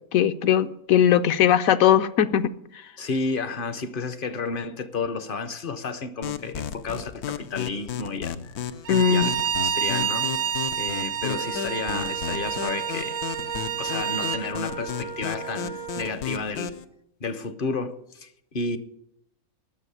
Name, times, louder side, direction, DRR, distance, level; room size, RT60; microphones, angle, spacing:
voice 1, 0.1-2.5 8.9-9.3, left 9 dB, 75° left, 1.1 m, -19 dB
voice 2, 3.0-8.7 9.1-10.3 10.8-13.2 13.8-16.7 17.2-18.8, left 4 dB, 50° left, 0.7 m, -32 dB
sound 1, 6.2-16.8, left 8 dB, 90° left, 1.3 m, -34 dB
Bowed string instrument, 8.9-14.4, right 8 dB, 55° right, 0.8 m, -29 dB
Wind instrument woodwind instrument, 11.3-16.2, right 6 dB, 85° right, 2.8 m, -37 dB
12.0 x 6.8 x 9.8 m
omnidirectional pair, 1.5 m